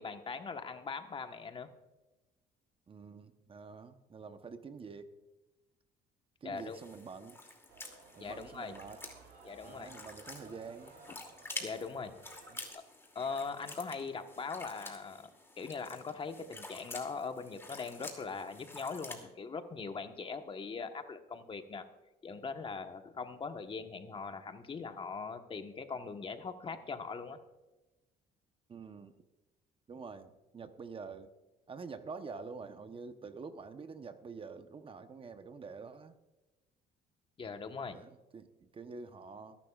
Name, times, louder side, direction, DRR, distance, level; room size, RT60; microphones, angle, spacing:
voice 1, 0.0-1.7 6.4-6.8 8.2-8.7 9.4-9.9 11.6-12.1 13.1-15.3 15.6-21.9 22.2-27.4 37.4-38.0, left 5 dB, 30° left, 7 dB, 1.2 m, -41 dB
voice 2, 2.9-5.1 6.4-7.4 8.1-9.0 9.6-10.9 12.5-12.6 28.7-29.1 29.9-31.3 31.7-36.1 37.9-39.6, right 5 dB, 30° right, 9 dB, 0.9 m, -47 dB
sound 1, 6.6-19.2, left 2 dB, 15° left, 2.6 m, -49 dB
sound 2, 7.7-12.7, right 4 dB, 75° right, 3.8 m, -56 dB
23.0 x 11.5 x 2.4 m, 1.1 s
cardioid pair, 110°, 17 cm